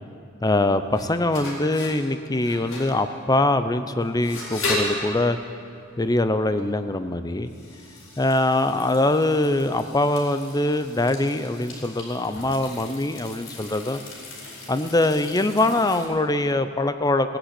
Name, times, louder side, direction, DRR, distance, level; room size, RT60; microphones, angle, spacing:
voice 1, 0.4-5.4 6.0-7.5 8.2-14.0 14.7-17.4, left 2 dB, 20° left, 10 dB, 0.6 m, -23 dB
sound 1, 0.6-16.1, left 2 dB, 80° left, 4.5 m, -36 dB
17.5 x 10.0 x 8.2 m, 2.6 s
head